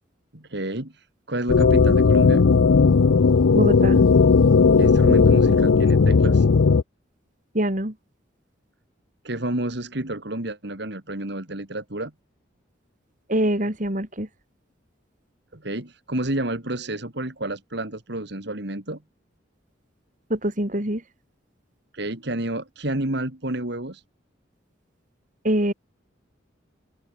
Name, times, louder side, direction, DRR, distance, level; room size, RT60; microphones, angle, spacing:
voice 1, 0.3-2.5 4.8-6.5 9.2-12.1 15.5-19.0 21.9-24.0, right 1 dB, 60° right, 2.8 m, -30 dB
sound 1, 1.5-6.8, left 4 dB, 85° left, 0.5 m, -16 dB
voice 2, 3.5-4.0 7.5-7.9 13.3-14.3 20.3-21.0 25.4-25.7, right 1 dB, 40° right, 4.0 m, -24 dB
open air
head